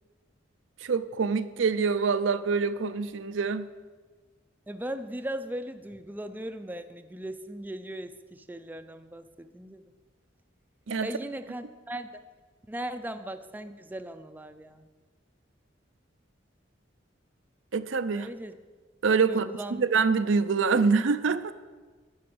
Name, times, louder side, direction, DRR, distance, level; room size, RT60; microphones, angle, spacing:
voice 1, 0.8-3.7 10.9-11.1 17.7-18.3 19.0-21.5, right 5 dB, 90° right, 11 dB, 0.5 m, -25 dB
voice 2, 4.7-9.8 11.0-12.1 12.7-14.9 18.1-18.5 19.2-19.8, right 1 dB, 10° right, 9 dB, 0.4 m, -38 dB
10.5 x 6.8 x 7.8 m, 1.4 s
head